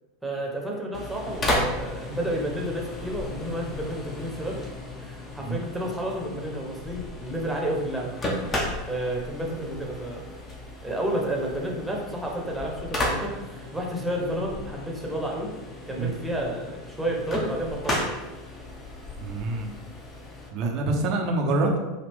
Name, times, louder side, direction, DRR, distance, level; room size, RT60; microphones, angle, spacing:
voice 1, 0.2-4.6 5.0-8.1 8.9-10.3 10.8-15.5 15.9-18.2, right 1 dB, 5° right, -2 dB, 1.0 m, -31 dB
sound 1, 0.9-20.5, left 1 dB, 25° left, 1.0 m, -34 dB
voice 2, 19.2-19.8 20.5-21.8, right 2 dB, 50° right, 2 dB, 0.7 m, -26 dB
5.1 x 2.4 x 3.6 m, 1.2 s
figure-of-eight pair, 85°, 0 cm